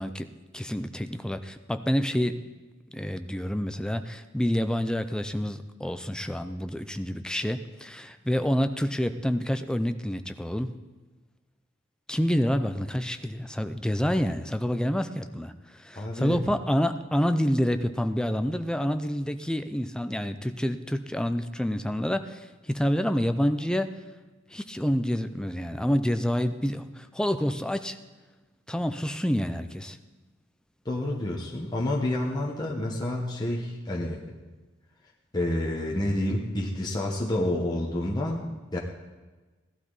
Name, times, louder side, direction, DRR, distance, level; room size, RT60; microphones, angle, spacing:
voice 1, 0.0-2.4 2.9-10.7 12.1-24.0 24.5-28.0 28.7-30.0, equal, 5° left, 9 dB, 0.5 m, -28 dB
voice 2, 15.9-16.4 30.8-34.2 35.3-38.8, left 1 dB, 20° left, -3 dB, 1.2 m, -29 dB
17.0 x 12.0 x 4.0 m, 1.2 s
head